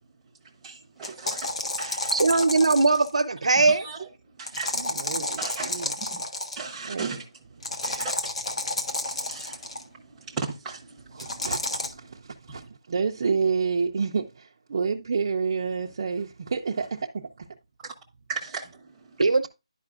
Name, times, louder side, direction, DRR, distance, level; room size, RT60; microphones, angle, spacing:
voice 1, 0.4-2.4 3.6-4.1 4.4-4.9 5.4-6.2 6.6-7.3 7.5-8.1 8.5-11.5 12.0-12.2 12.5-12.7 17.8-17.9 18.3-19.2, right 5 dB, 5° right, 0.8 m, -38 dB
sound 1, 1.0-3.2 4.5-6.7 7.6-9.8 11.2-11.9, left 2 dB, 70° left, 1.3 m, -31 dB
voice 2, 2.1-3.8 19.2-19.5, right 3 dB, 80° right, 0.7 m, -20 dB
voice 3, 4.7-5.9 6.9-7.1 11.1-17.5, right 5 dB, 35° right, 0.4 m, -29 dB
10.5 x 4.9 x 2.4 m
hypercardioid pair, 175°, 3 cm